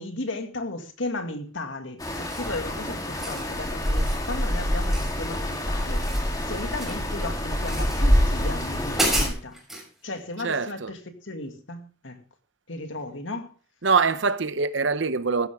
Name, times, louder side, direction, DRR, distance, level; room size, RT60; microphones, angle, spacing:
voice 1, 0.0-9.6 10.0-12.2 12.7-13.5, left 2 dB, 80° left, 2.2 m, -35 dB
sound 1, 2.0-9.3, equal, 20° left, 3.2 m, -26 dB
sound 2, 2.2-2.6 3.0-3.5 3.8-4.2 4.9-5.6 5.8-7.1 7.6-8.0 8.5-8.6 8.9-9.9, right 1 dB, ahead, 6.1 m, -31 dB
voice 2, 10.4-10.9 13.8-15.5, right 4 dB, 70° right, 0.8 m, -24 dB
15.0 x 13.0 x 3.6 m
head